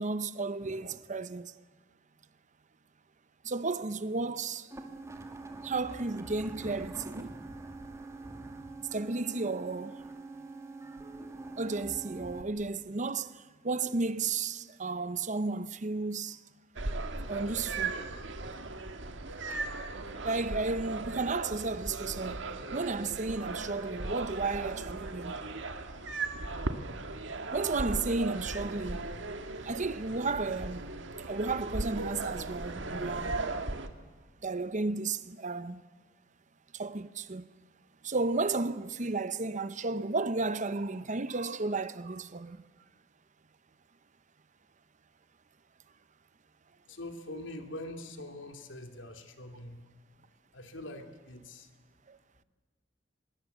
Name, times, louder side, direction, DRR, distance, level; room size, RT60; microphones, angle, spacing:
voice 1, 0.0-1.5 3.4-4.7 5.6-7.3 8.9-10.0 11.6-16.4 17.3-17.9 20.2-22.4 22.7-25.3 27.5-29.0 29.6-30.9 31.3-33.4 34.4-35.8 36.7-37.4 38.0-42.6 52.1-52.2, right 3 dB, 40° right, 0.9 m, -33 dB
sound 1, 4.7-12.4, right 2 dB, 15° right, 2.2 m, -44 dB
sound 2, 16.8-33.9, right 3 dB, 70° right, 1.8 m, -37 dB
voice 2, 46.9-49.8 50.5-51.7, left 1 dB, 75° left, 2.6 m, -43 dB
24.0 x 22.0 x 8.2 m
head